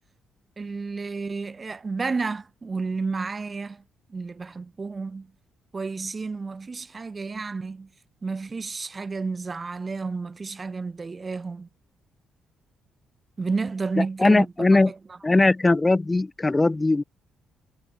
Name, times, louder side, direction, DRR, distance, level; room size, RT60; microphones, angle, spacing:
voice 1, 0.6-3.8 4.1-5.3 5.7-7.9 8.2-11.7 13.4-14.5 14.9-15.2, right 4 dB, 30° right, 7.5 m, -31 dB
voice 2, 14.2-14.9 15.2-17.0, left 2 dB, 20° left, 5.4 m, -19 dB
cardioid pair, 90°, 0 cm